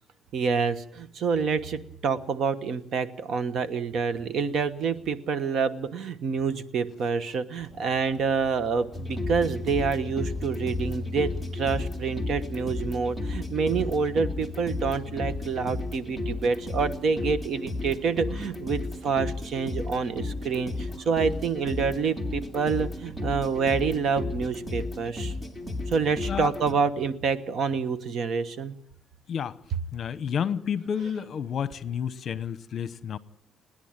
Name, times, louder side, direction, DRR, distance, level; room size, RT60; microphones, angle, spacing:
voice 1, 0.3-25.3 25.9-28.7, right 5 dB, 60° right, 12 dB, 1.2 m, -27 dB
sound 1, 7.6-26.4, right 1 dB, 40° right, 4.7 m, -51 dB
sound 2, 8.9-26.7, left 2 dB, 5° right, 2.2 m, -33 dB
voice 2, 29.9-33.2, left 8 dB, 50° left, 15 dB, 0.9 m, -30 dB
29.0 x 10.0 x 8.9 m, 0.73 s
cardioid pair, 135°, 0 cm